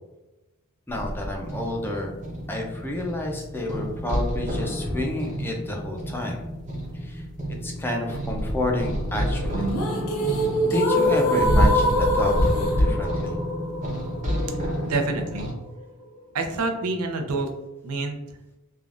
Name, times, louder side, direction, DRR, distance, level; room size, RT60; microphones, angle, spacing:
voice 1, 0.9-2.2 2.5-6.5 6.9-7.2 7.6-9.7 10.6-13.4, left 1 dB, 10° left, 0 dB, 0.4 m, -29 dB
sound 1, 0.9-15.5, equal, 35° right, 0.7 m, -28 dB
sound 2, 9.5-15.5, left 1 dB, 90° left, 0.6 m, -24 dB
voice 2, 14.8-15.5 16.3-17.5 17.8-18.2, right 3 dB, 80° right, 5 dB, 0.5 m, -27 dB
3.2 x 2.3 x 2.4 m, 1.0 s
head